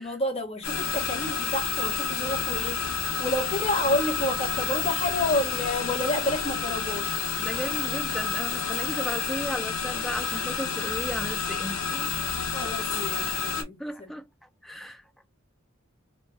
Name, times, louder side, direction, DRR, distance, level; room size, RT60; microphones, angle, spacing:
voice 1, 0.0-2.8 3.2-7.2 12.5-14.1, left 1 dB, 30° left, 1.0 m, -29 dB
sound 1, 0.6-13.6, left 6 dB, 75° left, 0.9 m, -30 dB
voice 2, 7.4-12.1 13.6-14.3 14.6-15.0, equal, ahead, 0.4 m, -35 dB
3.1 x 2.2 x 3.2 m
head